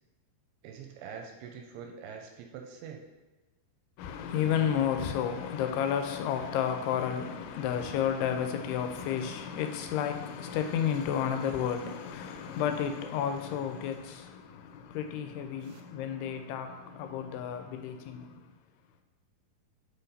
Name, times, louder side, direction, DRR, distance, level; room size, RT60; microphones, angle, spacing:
voice 1, 0.6-3.0 15.6-15.8, right 6 dB, 85° right, 2.5 m, -44 dB
voice 2, 4.0-18.5, left 8 dB, 80° left, 2.5 m, -32 dB
5.8 x 5.6 x 4.1 m
omnidirectional pair, 4.8 m